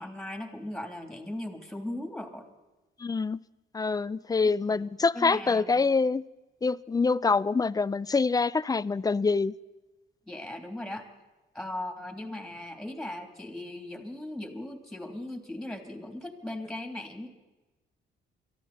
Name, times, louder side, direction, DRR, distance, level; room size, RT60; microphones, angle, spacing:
voice 1, 0.0-2.5 4.4-4.9 5.1-5.9 10.3-11.1 11.5-17.3, left 1 dB, ahead, 3.3 m, -38 dB
voice 2, 3.0-3.4 3.7-6.2 6.6-9.5, left 4 dB, 20° left, 0.5 m, -25 dB
23.0 x 14.0 x 4.3 m
cardioid pair, 90°, 20 cm